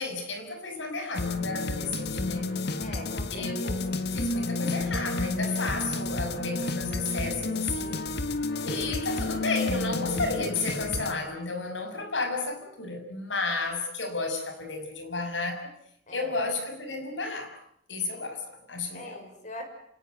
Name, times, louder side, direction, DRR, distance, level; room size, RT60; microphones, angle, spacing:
voice 1, 0.0-2.5 3.3-3.8 4.1-8.0 8.6-15.7 16.1-17.5 17.9-19.3, left 3 dB, 90° left, 7 dB, 6.5 m, -32 dB
sound 1, 1.1-11.1, left 2 dB, 60° left, 1.8 m, -31 dB
voice 2, 2.8-3.5 16.1-16.3 18.9-19.6, left 1 dB, 45° left, 5 dB, 6.4 m, -42 dB
28.5 x 18.5 x 9.5 m, 0.72 s
head